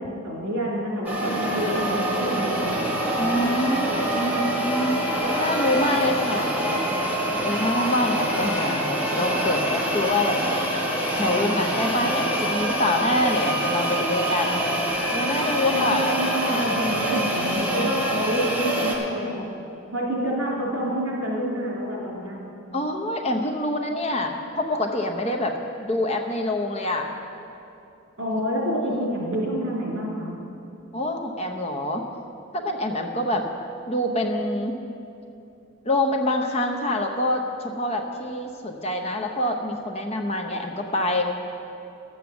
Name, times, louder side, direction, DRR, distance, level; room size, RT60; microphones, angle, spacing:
voice 1, 0.0-3.0 15.7-19.4 19.9-22.4 28.2-30.4, equal, 70° right, -3 dB, 3.1 m, -28 dB
sound 1, 1.0-18.9, right 1 dB, 5° right, 1.4 m, -25 dB
voice 2, 3.1-5.0 5.4-6.8 7.4-10.4 11.1-14.6 15.1-16.1 16.5-16.8 22.7-27.1 28.8-29.1 30.9-32.0 32.5-33.5 33.9-34.8 35.8-41.2, left 1 dB, 30° left, 3 dB, 0.7 m, -26 dB
11.5 x 7.9 x 7.1 m, 2.8 s
head